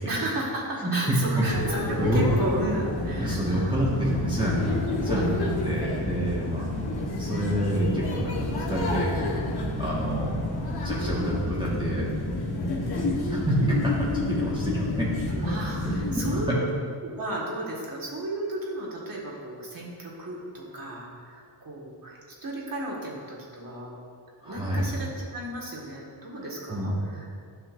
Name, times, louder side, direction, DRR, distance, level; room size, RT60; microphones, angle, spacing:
voice 1, 0.1-3.8 6.6-6.8 15.4-16.7 17.0-24.0 24.4-27.3, right 1 dB, 45° right, -4 dB, 1.7 m, -34 dB
sound 1, 1.4-16.4, left 1 dB, 55° left, 1.3 m, -29 dB
sound 2, 2.2-11.4, left 2 dB, 15° left, 0.7 m, -42 dB
voice 2, 3.2-6.7 7.2-9.3 9.8-12.3 13.0-15.1 15.8-16.5 24.4-24.9 26.7-26.9, equal, 10° right, -7 dB, 1.5 m, -28 dB
10.5 x 5.6 x 2.5 m, 2.2 s
cardioid pair, 75°, 48 cm